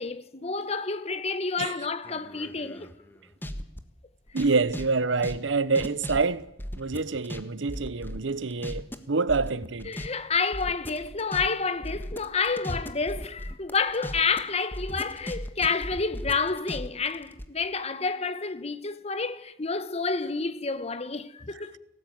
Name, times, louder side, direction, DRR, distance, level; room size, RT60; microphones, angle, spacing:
voice 1, 0.0-2.9 9.8-21.8, left 4 dB, 35° left, 1.2 m, -29 dB
sound 1, 2.0-3.8 4.3-7.4 7.7-9.0 9.3-10.1 10.3-14.4 14.7-17.4, equal, 10° left, 1.5 m, -37 dB
voice 2, 4.3-6.5 6.8-9.9, right 4 dB, 90° right, 0.9 m, -26 dB
19.0 x 17.0 x 9.3 m
head